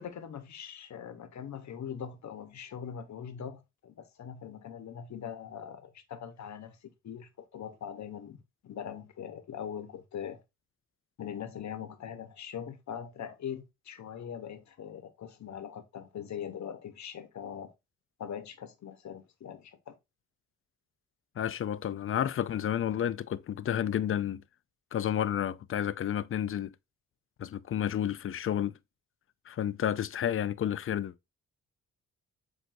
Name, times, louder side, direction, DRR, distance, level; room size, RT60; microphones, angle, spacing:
voice 1, 0.0-10.4 11.2-17.7 18.2-19.9, left 8 dB, 60° left, 1.0 m, -42 dB
voice 2, 21.4-24.4 24.9-26.7 27.4-28.7 29.5-31.1, left 10 dB, 40° left, 0.4 m, -31 dB
7.5 x 2.6 x 2.6 m
cardioid pair, 65°, 32 cm